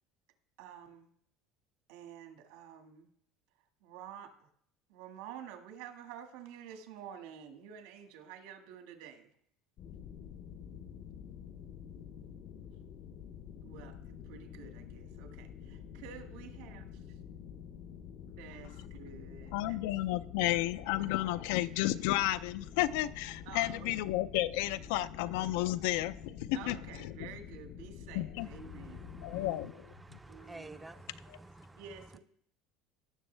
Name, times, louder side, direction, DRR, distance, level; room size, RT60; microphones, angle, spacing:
voice 1, 0.6-1.1 1.9-3.1 3.8-4.5 4.9-9.3 13.6-14.0 14.2-16.9 18.3-19.8 23.5-23.9 26.5-29.7 30.3-30.8 31.7-32.2, right 8 dB, 80° right, 5 dB, 1.7 m, -50 dB
sound 1, 9.8-29.5, left 8 dB, 45° left, 0.7 m, -48 dB
voice 2, 19.5-26.8 28.1-28.5 29.2-29.8 30.1-30.2 31.3-31.4, left 15 dB, 80° left, 15 dB, 0.4 m, -32 dB
voice 3, 28.7-29.5 30.0-31.8, right 2 dB, 10° right, 10 dB, 0.4 m, -51 dB
17.5 x 6.3 x 3.3 m, 0.65 s
cardioid pair, 155°, 0 cm